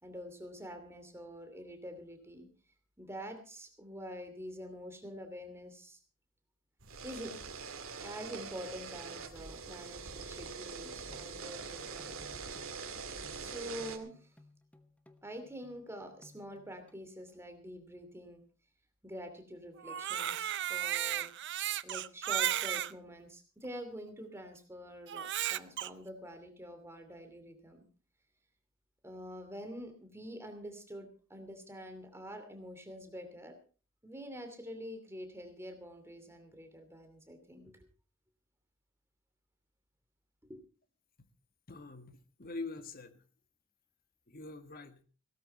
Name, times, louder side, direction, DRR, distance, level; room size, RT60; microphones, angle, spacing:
voice 1, 0.0-2.5 3.0-6.0 7.0-7.4 8.0-12.1 13.3-14.3 15.2-18.4 19.0-21.3 21.8-27.8 29.0-33.6 34.0-37.7 40.5-40.6, equal, 10° right, 6 dB, 2.7 m, -46 dB
sound 1, 6.8-14.0, right 5 dB, 70° right, 2.3 m, -44 dB
sound 2, 10.8-17.7, left 2 dB, 5° left, 1.1 m, -62 dB
Crying sobbing, 19.8-22.9 23.6-23.7 25.1-25.9, right 11 dB, 55° right, 0.6 m, -34 dB
voice 2, 41.7-43.2 44.3-45.0, left 3 dB, 45° left, 9 dB, 1.5 m, -44 dB
17.0 x 13.5 x 4.4 m, 0.37 s
head